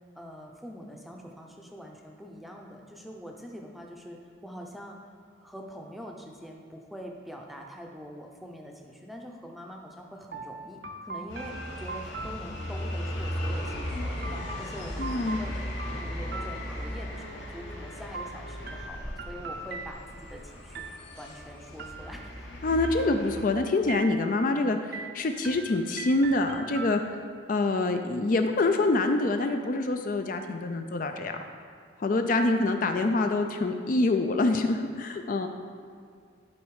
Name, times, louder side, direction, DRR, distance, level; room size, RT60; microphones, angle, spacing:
voice 1, 0.2-5.0 5.4-15.5 16.0-20.9 21.2-22.3 22.7-23.1 32.8-33.1, equal, ahead, 0 dB, 0.6 m, -44 dB
sound 1, 10.3-13.1 14.2-17.2 18.1-20.3 20.8-21.4 21.8-22.5 22.8-23.5 23.9-24.5 24.9-27.4, right 3 dB, 55° right, 0.6 m, -41 dB
sound 2, 11.3-23.5, equal, 65° left, 1.5 m, -36 dB
voice 2, 15.0-15.4 22.6-27.2 27.5-31.4 32.0-35.5, left 2 dB, 45° left, 6 dB, 0.4 m, -26 dB
11.5 x 4.1 x 4.8 m, 2.2 s
head